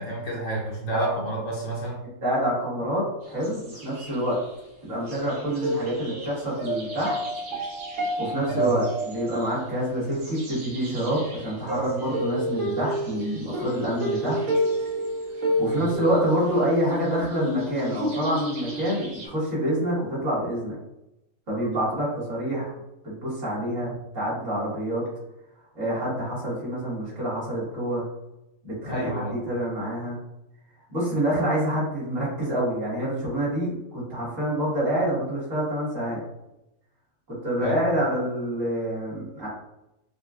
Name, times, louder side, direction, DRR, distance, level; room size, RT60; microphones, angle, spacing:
voice 1, 0.0-2.0 8.5-8.8 15.6-15.9 23.8-24.0 28.8-29.4 37.6-37.8, right 2 dB, 65° left, -3 dB, 1.2 m, -30 dB
voice 2, 2.2-4.4 4.8-7.2 8.0-14.4 15.6-20.8 21.5-22.7 23.0-25.0 25.7-28.0 28.6-30.2 30.9-36.2 37.3-39.5, right 1 dB, 60° right, -8 dB, 2.0 m, -27 dB
sound 1, 3.3-4.4 5.1-19.3, right 1 dB, 80° right, 1.4 m, -30 dB
5.0 x 2.3 x 2.4 m, 0.90 s
omnidirectional pair, 1.5 m